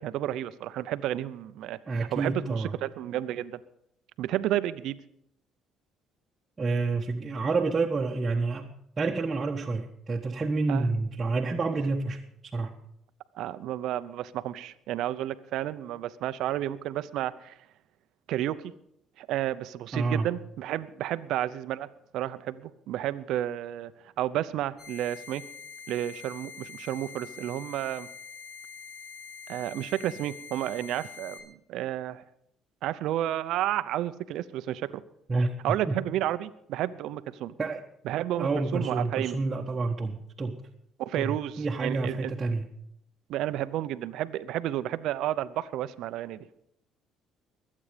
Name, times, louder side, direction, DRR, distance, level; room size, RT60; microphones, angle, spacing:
voice 1, 0.0-3.6 4.2-5.0 10.7-10.9 13.3-17.5 18.3-18.7 19.2-21.9 22.1-23.9 24.2-25.4 25.9-28.1 29.5-32.2 32.8-35.0 35.6-37.5 38.0-39.4 41.0-42.3 43.3-46.5, right 13 dB, 75° right, 14 dB, 0.7 m, -31 dB
voice 2, 1.9-2.7 6.6-12.2 12.5-12.7 19.9-20.3 35.3-35.5 35.9-36.0 37.6-37.8 38.4-40.6 41.2-42.7, right 3 dB, 30° right, -1 dB, 1.3 m, -28 dB
sound 1, 24.8-31.4, left 6 dB, 45° left, 5.5 m, -45 dB
22.0 x 8.6 x 5.1 m, 0.75 s
supercardioid pair, 70°, 0 cm